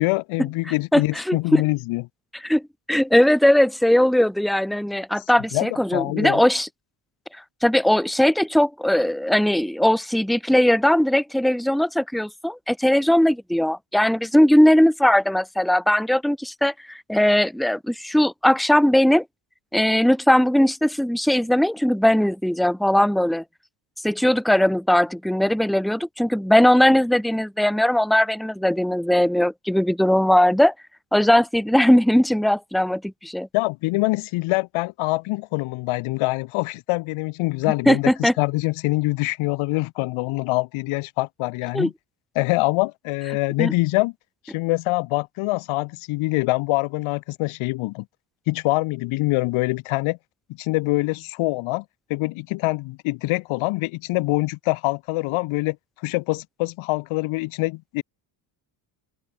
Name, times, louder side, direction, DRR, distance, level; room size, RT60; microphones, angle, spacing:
voice 1, 0.0-2.0 5.5-6.4 33.5-41.9 42.4-44.1 44.5-48.1 48.5-50.2 50.6-51.8 52.1-55.8 56.0-58.0, left 22 dB, 90° left, 4.4 m, -24 dB
voice 2, 0.9-1.6 2.4-2.6 2.9-6.7 7.6-19.2 19.7-23.4 24.0-30.7 31.1-33.5 37.9-38.3 41.7-41.9 43.6-43.7, left 1 dB, ahead, 1.9 m, -19 dB
open air
cardioid pair, 130°, 47 cm